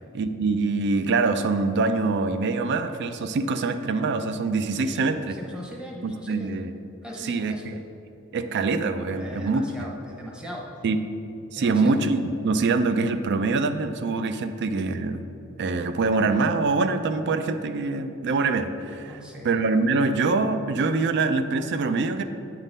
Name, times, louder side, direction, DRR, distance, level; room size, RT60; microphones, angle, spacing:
voice 1, 0.1-5.4 6.0-6.7 7.2-7.8 8.3-9.7 10.8-11.0 11.5-15.2 15.6-22.2, right 3 dB, 50° right, 10 dB, 0.4 m, -24 dB
voice 2, 5.4-6.6 7.0-7.6 9.1-10.6 11.6-11.9 19.0-19.5, equal, 5° right, -2 dB, 0.9 m, -39 dB
9.0 x 3.8 x 5.3 m, 2.7 s
head